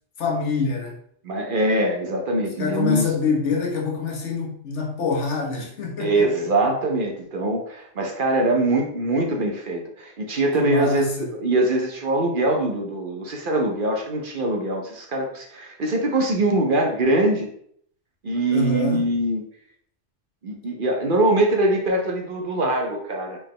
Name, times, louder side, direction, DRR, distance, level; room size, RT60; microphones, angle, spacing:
voice 1, 0.2-1.0 2.6-6.5 10.6-11.3 18.5-19.0, left 4 dB, 75° left, 0 dB, 1.4 m, -25 dB
voice 2, 1.2-3.0 6.0-11.0 11.3-17.5 18.2-19.4 20.4-23.4, right 2 dB, 50° right, 2 dB, 0.9 m, -23 dB
4.4 x 3.7 x 3.2 m, 0.65 s
omnidirectional pair, 1.2 m